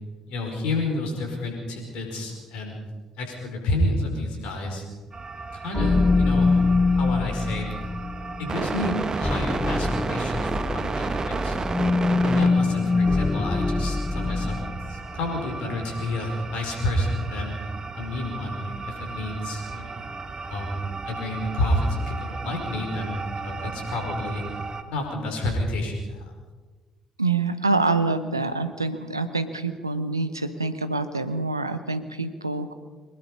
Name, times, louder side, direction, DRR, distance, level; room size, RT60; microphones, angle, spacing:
voice 1, 0.3-2.7 3.2-4.8 5.5-6.6 7.0-7.7 8.4-11.7 12.2-17.5 17.9-20.0 20.4-24.4 24.9-26.3, left 1 dB, 65° left, 3 dB, 5.0 m, -29 dB
sound 1, 5.1-24.8, right 4 dB, 35° right, 1.7 m, -33 dB
sound 2, 5.7-14.9, left 3 dB, 15° left, 0.6 m, -24 dB
voice 2, 27.2-32.7, right 3 dB, 90° right, 11 dB, 0.8 m, -26 dB
24.0 x 20.5 x 5.6 m, 1.3 s
figure-of-eight pair, 45°, 2 cm